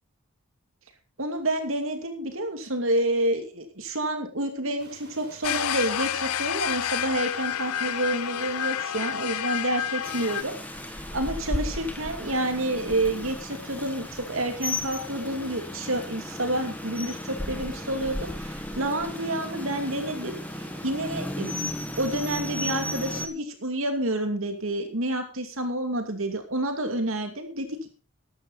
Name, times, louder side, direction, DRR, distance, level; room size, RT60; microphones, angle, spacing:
voice 1, 1.2-10.5 11.1-21.5 22.0-27.9, right 1 dB, 65° right, 6 dB, 2.7 m, -29 dB
Stream, 4.8-21.7, right 2 dB, 50° right, 6.3 m, -50 dB
sound 1, 5.4-10.4, left 10 dB, 80° left, 0.6 m, -29 dB
Rain, 10.0-23.3, left 1 dB, 5° left, 1.2 m, -35 dB
14.0 x 11.0 x 4.2 m, 0.36 s
head